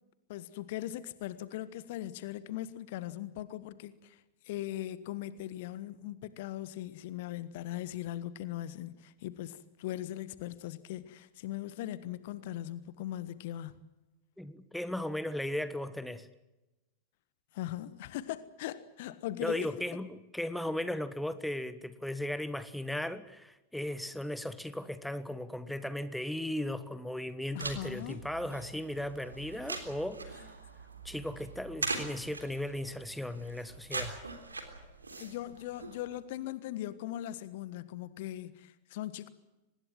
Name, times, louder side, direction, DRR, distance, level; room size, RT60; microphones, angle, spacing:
voice 1, 0.3-13.7 17.5-19.7 27.5-28.2 35.2-39.3, left 13 dB, 50° left, 15 dB, 1.4 m, -39 dB
voice 2, 14.4-16.3 19.4-30.5 31.0-34.2, left 1 dB, ahead, 13 dB, 1.5 m, -36 dB
sound 1, 27.6-36.2, right 3 dB, 80° right, 3.5 m, -42 dB
24.5 x 20.5 x 7.6 m, 1.0 s
figure-of-eight pair, 90°, 0 cm